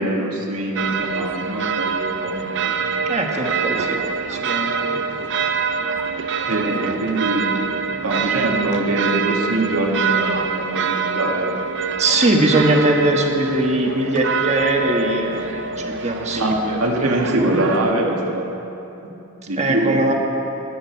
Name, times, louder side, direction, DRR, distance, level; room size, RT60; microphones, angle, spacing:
voice 1, 0.0-2.5 6.5-7.6 8.0-11.6 16.3-18.5 19.5-20.0, right 1 dB, 75° right, 0 dB, 1.9 m, -23 dB
sound 1, 0.8-17.9, right 5 dB, 55° right, 0.6 m, -25 dB
voice 2, 3.0-4.0 4.3-5.0 6.6-7.1 12.0-16.9 17.4-17.7 19.6-20.1, right 1 dB, 30° right, 1 dB, 1.4 m, -21 dB
21.5 x 9.0 x 4.6 m, 3.0 s
head